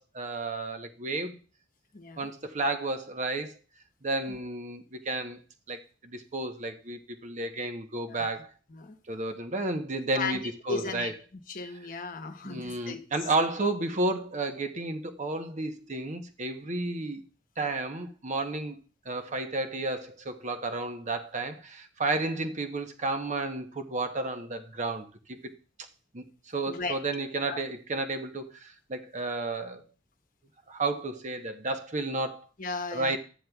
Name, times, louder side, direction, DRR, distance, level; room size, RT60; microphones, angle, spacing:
voice 1, 0.0-1.3 2.2-3.6 4.0-5.4 5.7-8.5 9.1-11.1 12.4-17.2 17.6-25.5 26.1-29.8 30.7-32.5 32.9-33.2, right 2 dB, 40° right, 0.9 m, -32 dB
voice 2, 1.9-2.3 4.3-4.4 8.1-8.4 8.7-9.0 10.1-10.4 10.7-11.1 11.5-13.1 26.7-27.0 27.5-27.6 32.6-33.2, left 4 dB, 50° left, 1.1 m, -36 dB
13.0 x 9.3 x 2.3 m
head